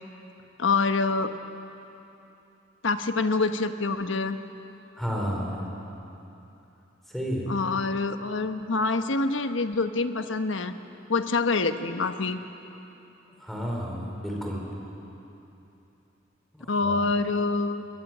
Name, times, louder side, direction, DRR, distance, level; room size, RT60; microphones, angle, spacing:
voice 1, 0.6-1.3 2.8-4.4 7.5-10.7 11.1-12.4 16.7-17.9, left 3 dB, 80° left, 8 dB, 1.2 m, -26 dB
voice 2, 5.0-5.7 7.1-7.5 13.4-14.6 16.5-17.0, equal, ahead, -2 dB, 4.6 m, -31 dB
23.0 x 21.5 x 9.3 m, 2.9 s
head